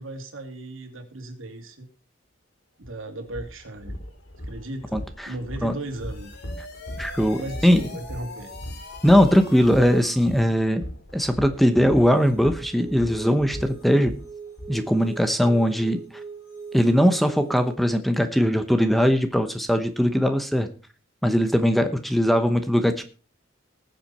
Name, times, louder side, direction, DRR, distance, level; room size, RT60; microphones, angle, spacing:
voice 1, 0.0-1.9 2.8-4.0 4.4-6.3 7.4-8.5, right 2 dB, 75° right, 5 dB, 2.8 m, -36 dB
sound 1, 2.8-2.9 3.3-14.7, equal, 70° left, 3.0 m, -38 dB
voice 2, 4.9-5.3 5.6-5.7 7.0-7.8 9.0-10.8 11.1-14.1 14.7-16.0 16.7-20.7 21.2-23.0, equal, ahead, 8 dB, 0.9 m, -20 dB
sound 2, 5.8-10.6, left 2 dB, 50° left, 3.0 m, -43 dB
sound 3, 11.5-17.7, right 5 dB, 85° left, 4.5 m, -41 dB
19.5 x 7.8 x 4.3 m, 0.38 s
head